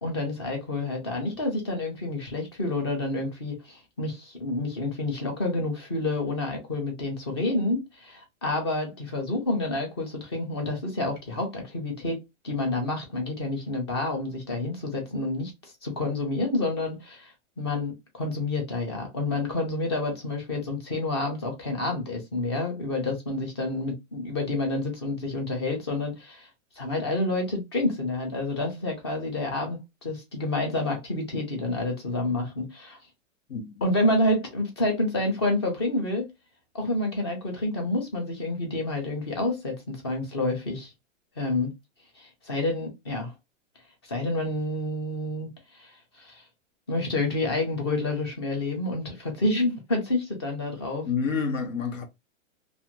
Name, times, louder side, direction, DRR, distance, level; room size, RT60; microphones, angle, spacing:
voice 1, 0.0-12.2 12.4-15.5 15.8-26.5 26.8-33.0 33.8-36.3 36.7-40.9 41.4-41.7 42.2-43.3 44.0-45.5 45.7-46.4 46.9-51.1, left 2 dB, 20° left, 0.5 m, -29 dB
voice 2, 51.0-52.1, left 5 dB, 80° left, 1.0 m, -28 dB
2.5 x 2.5 x 2.9 m
hypercardioid pair, 175°, 38 cm